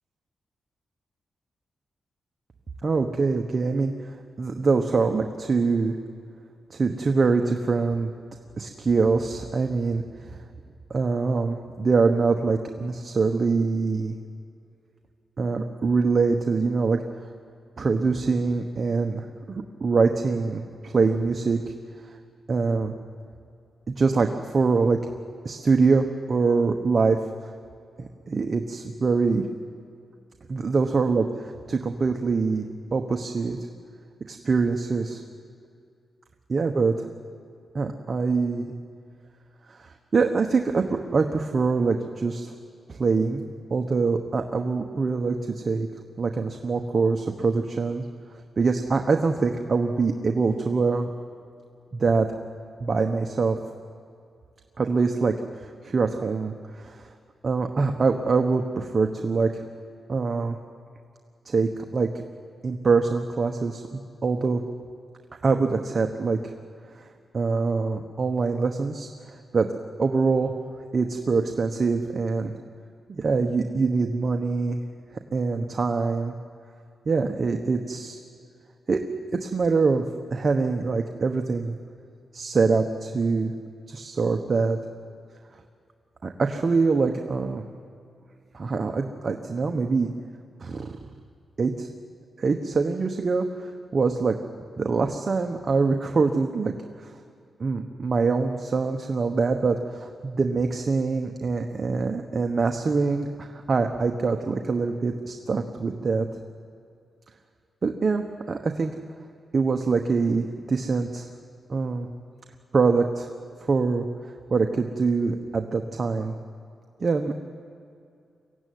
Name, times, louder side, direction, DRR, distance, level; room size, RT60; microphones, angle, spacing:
voice 1, 2.8-6.0 6.7-8.1 8.6-10.0 10.3-10.4 10.9-14.1 15.4-17.3 17.8-21.7 22.5-22.9 24.0-25.0 25.4-27.2 28.0-29.4 30.5-33.6 34.3-35.2 36.5-37.0 37.7-38.7 39.7-42.5 42.9-43.4 43.7-45.9 46.2-48.0 48.6-51.1 51.9-52.3 52.8-53.6 54.8-55.3 55.6-57.1 57.4-59.6 60.1-60.6 61.4-62.1 62.6-64.6 65.4-66.5 67.3-69.1 69.5-69.7 70.0-70.5 70.9-72.5 73.1-74.8 75.3-76.3 77.0-78.2 78.9-79.0 79.3-80.0 80.3-81.8 82.3-83.5 83.9-84.8 86.2-87.7 88.5-90.1 90.6-91.0 91.6-91.9 92.4-94.4 94.8-96.7 97.0-97.1 97.6-106.3 107.8-108.9 109.5-111.3 111.7-112.1 112.7-113.3 113.6-114.0 114.5-116.3 117.0-117.3, right 4 dB, 45° right, 4 dB, 1.1 m, -24 dB
23.5 x 15.5 x 9.4 m, 2.5 s
wide cardioid pair, 110°, 0 cm